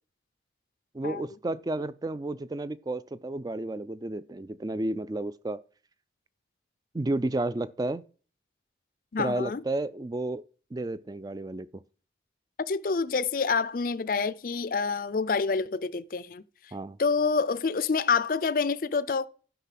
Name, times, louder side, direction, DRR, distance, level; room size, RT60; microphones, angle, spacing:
voice 1, 0.9-5.6 6.9-8.0 9.2-10.4 10.7-11.7 16.7-17.0, right 2 dB, 20° right, 0.3 m, -32 dB
voice 2, 9.1-9.6 12.7-16.7 17.0-19.3, left 5 dB, 50° left, 0.4 m, -27 dB
11.5 x 5.5 x 5.9 m
head